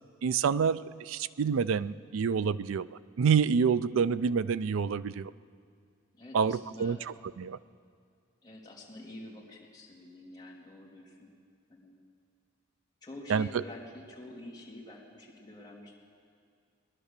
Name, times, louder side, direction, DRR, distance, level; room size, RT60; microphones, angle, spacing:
voice 1, 0.2-2.9 3.2-5.3 6.3-7.0 7.4-7.6 13.3-13.6, right 6 dB, 70° right, 16 dB, 0.4 m, -27 dB
voice 2, 6.1-7.0 8.4-11.3 11.7-12.0 13.0-16.0, left 1 dB, 20° left, -4 dB, 2.5 m, -47 dB
19.5 x 11.0 x 6.7 m, 2.2 s
head